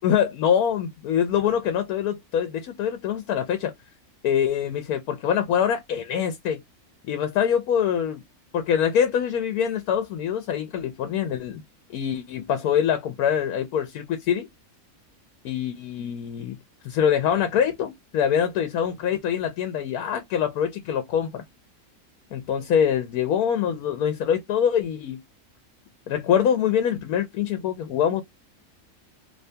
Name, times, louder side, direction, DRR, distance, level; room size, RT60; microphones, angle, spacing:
voice 1, 0.0-3.7 4.2-6.6 7.1-8.2 8.5-11.6 11.9-14.5 15.4-16.6 16.8-21.4 22.3-25.2 26.1-28.2, left 8 dB, 80° left, 1.1 m, -24 dB
2.9 x 2.7 x 3.3 m
omnidirectional pair, 1.5 m